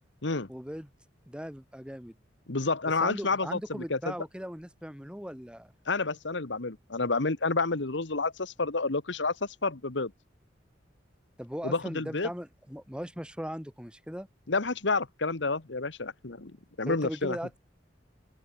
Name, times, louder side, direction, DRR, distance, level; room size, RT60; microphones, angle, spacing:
voice 1, 0.5-0.9 1.3-2.2 3.0-5.7 11.4-14.3 16.9-17.6, equal, 5° right, 4.0 m, -39 dB
voice 2, 2.5-4.1 5.9-10.1 11.6-12.3 14.5-17.4, left 3 dB, 80° left, 1.5 m, -29 dB
open air
head